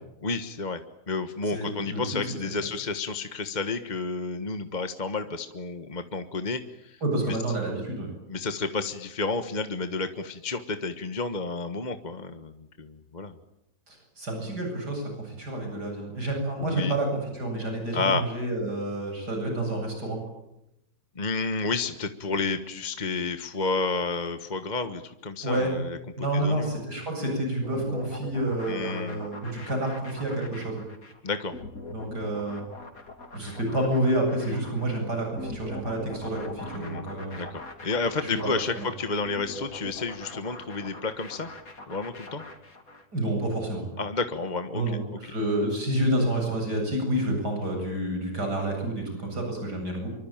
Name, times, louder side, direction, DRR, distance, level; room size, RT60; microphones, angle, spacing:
voice 1, 0.2-0.8 1.1-7.0 7.3-7.4 8.3-13.3 16.6-16.9 17.9-18.2 21.1-26.7 28.7-29.3 31.2-31.5 36.7-37.1 37.4-41.5 41.9-42.4 44.0-44.8, left 3 dB, 30° left, 8 dB, 1.4 m, -31 dB
voice 2, 1.5-2.0 7.0-8.1 13.9-20.2 25.4-25.7 26.2-30.8 31.9-32.6 33.3-37.4 38.2-38.3 38.8-38.9 43.1-43.9 44.7-50.1, right 1 dB, 85° right, 2 dB, 8.7 m, -29 dB
sound 1, 27.6-43.1, left 2 dB, 60° left, 3.7 m, -42 dB
26.5 x 24.0 x 9.0 m, 0.86 s
omnidirectional pair, 1.7 m